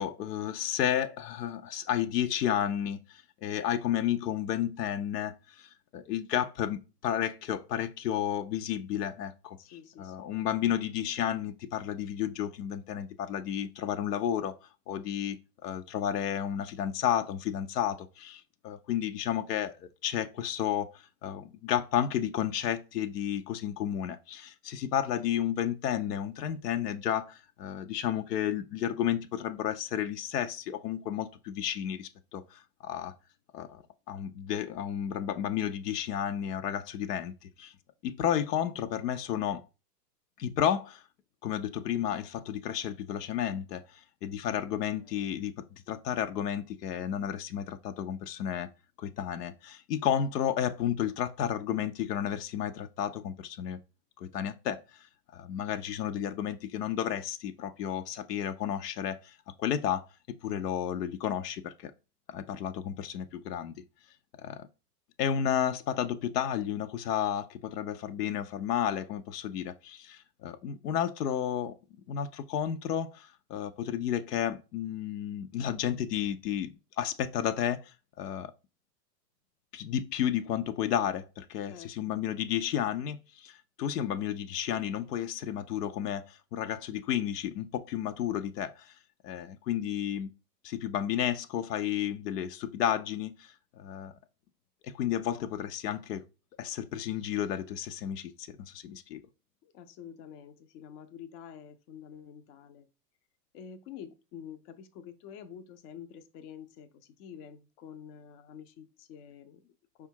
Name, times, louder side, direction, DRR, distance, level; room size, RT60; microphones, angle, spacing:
voice 1, 0.0-9.6 10.0-14.6 14.9-33.1 33.5-37.7 38.0-39.6 40.4-41.0 41.4-45.5 45.9-48.7 49.0-53.8 54.2-55.1 55.3-60.1 60.4-61.9 62.3-63.7 64.4-64.7 65.2-71.7 72.1-78.5 79.7-88.9 89.2-90.3 90.6-94.1 94.8-96.2 96.6-99.2, left 10 dB, 75° left, 0.7 m, -32 dB
voice 2, 9.6-10.3 45.0-45.3 81.7-82.2 99.6-102.9 103.5-110.1, left 8 dB, 35° left, 0.7 m, -48 dB
4.9 x 2.4 x 4.5 m
hypercardioid pair, 115°, 49 cm